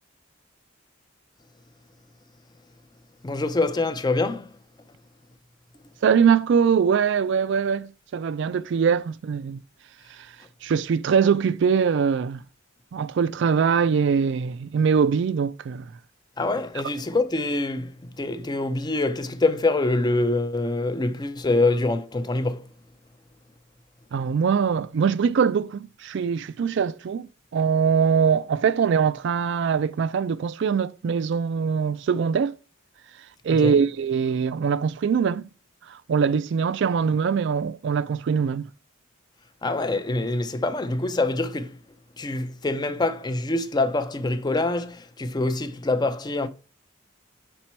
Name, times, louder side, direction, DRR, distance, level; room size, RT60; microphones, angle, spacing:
voice 1, 3.2-4.5 16.4-22.6 33.5-33.7 39.6-41.8 42.2-46.5, left 2 dB, 20° left, 0.4 m, -25 dB
voice 2, 6.0-9.6 10.1-10.3 10.6-12.4 12.9-15.9 24.1-32.6 33.4-35.5 35.9-38.7, right 6 dB, 60° right, 0.3 m, -22 dB
6.0 x 4.4 x 4.4 m
head